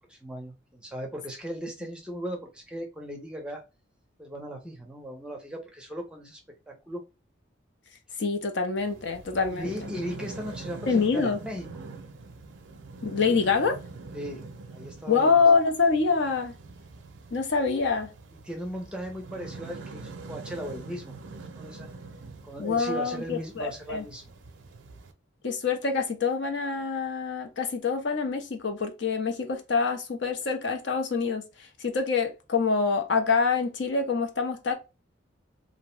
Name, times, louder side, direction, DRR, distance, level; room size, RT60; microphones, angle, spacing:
voice 1, 0.1-3.6 4.2-6.4 6.7-7.0 9.5-11.7 14.1-15.4 18.4-21.1 21.6-21.9 22.4-24.2, equal, 5° right, 0.5 m, -37 dB
voice 2, 8.2-9.7 10.9-11.4 13.0-13.8 15.1-16.5 17.3-18.1 22.6-24.0 25.4-34.7, left 5 dB, 60° left, 0.5 m, -25 dB
sound 1, 8.8-25.1, right 3 dB, 70° right, 0.4 m, -44 dB
2.6 x 2.0 x 3.0 m
head